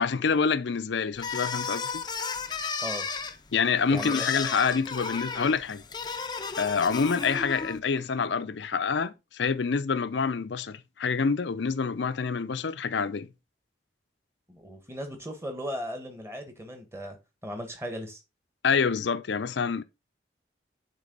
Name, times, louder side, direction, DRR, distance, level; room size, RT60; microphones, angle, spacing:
voice 1, 0.0-1.9 3.5-5.8 6.6-13.3 18.6-19.8, left 5 dB, 70° left, 0.5 m, -27 dB
sound 1, 1.2-7.8, left 5 dB, 20° left, 0.5 m, -34 dB
voice 2, 3.9-4.3 14.5-17.2 17.4-18.2, equal, 15° right, 1.3 m, -37 dB
8.3 x 3.8 x 3.9 m
head